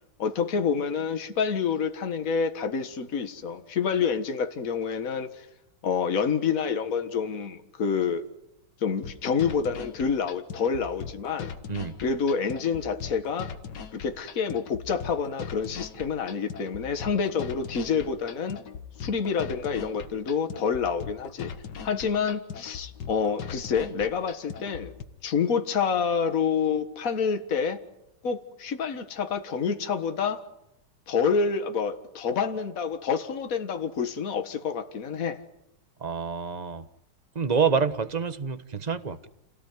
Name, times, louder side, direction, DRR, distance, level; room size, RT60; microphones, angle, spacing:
voice 1, 0.2-5.5 5.8-8.2 8.8-11.5 12.0-13.5 13.9-18.6 19.0-21.5 21.8-24.9 25.2-27.8 28.2-30.4 31.1-35.4, left 6 dB, 50° left, 2.0 m, -28 dB
sound 1, 9.0-25.0, left 7 dB, 65° left, 2.1 m, -40 dB
voice 2, 36.0-36.8 37.3-39.3, right 6 dB, 25° right, 1.1 m, -27 dB
28.5 x 18.0 x 9.4 m
omnidirectional pair, 2.0 m